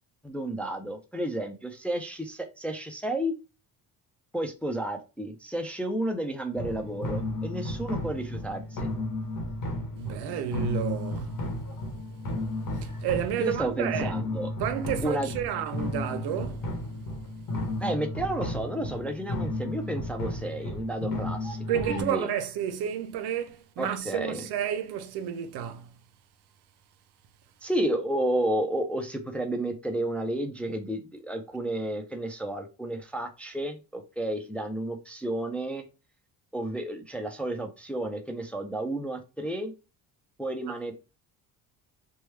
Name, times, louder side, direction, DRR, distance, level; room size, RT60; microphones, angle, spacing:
voice 1, 0.2-3.3 4.3-8.9 13.4-14.5 15.0-15.3 17.8-22.3 23.8-24.4 27.6-35.8 36.5-39.7 40.4-40.9, right 1 dB, 5° left, 0.4 m, -31 dB
sound 1, 6.5-22.0, left 1 dB, 55° left, 1.1 m, -33 dB
voice 2, 10.0-11.4 12.8-14.1 14.6-16.7 21.7-25.9, right 10 dB, 70° right, 0.6 m, -31 dB
3.0 x 2.3 x 3.1 m
cardioid pair, 95°, 40 cm